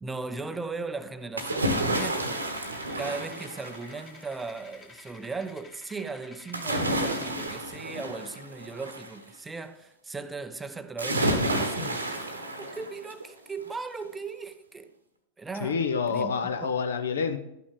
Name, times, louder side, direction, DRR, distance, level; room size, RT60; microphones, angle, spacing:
voice 1, 0.0-2.5 3.0-12.3 12.6-14.9 15.4-15.8 16.1-16.3 16.6-16.7, right 4 dB, 10° right, 0.5 m, -37 dB
sound 1, 1.4-4.2 6.5-9.1 11.0-13.3 13.7-13.8, right 1 dB, 80° right, 1.1 m, -30 dB
sound 2, 2.3-7.5, left 3 dB, 20° left, 1.6 m, -51 dB
voice 2, 15.6-17.4, left 5 dB, 65° left, 0.7 m, -27 dB
12.0 x 6.1 x 3.7 m
figure-of-eight pair, 90°, 0 cm